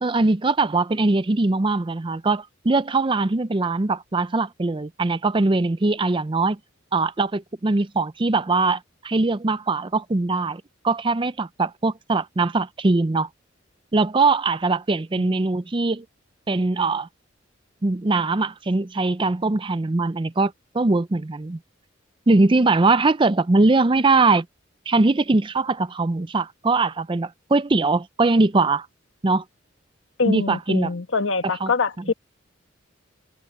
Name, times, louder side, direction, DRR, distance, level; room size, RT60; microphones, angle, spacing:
voice 1, 0.0-6.6 6.9-8.8 9.0-13.3 13.9-16.0 16.5-17.1 17.8-21.6 22.3-24.4 24.9-28.9 29.2-29.4 30.3-30.9 31.6-31.7, right 3 dB, 25° right, 0.5 m, -21 dB
voice 2, 30.2-32.1, left 4 dB, 75° left, 1.4 m, -24 dB
head